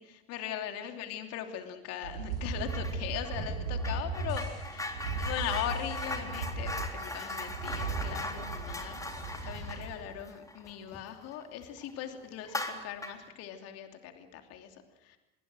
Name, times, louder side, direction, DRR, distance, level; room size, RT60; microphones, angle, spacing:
voice 1, 0.0-15.2, left 10 dB, 55° left, 5 dB, 3.0 m, -40 dB
sound 1, 2.0-10.1, right 4 dB, 75° right, 7.1 m, -37 dB
sound 2, 2.6-3.0 3.2-11.4 11.8-11.9 12.4-13.3, left 2 dB, 10° left, 3.6 m, -39 dB
27.5 x 21.0 x 6.4 m, 0.99 s
figure-of-eight pair, 65°, 30 cm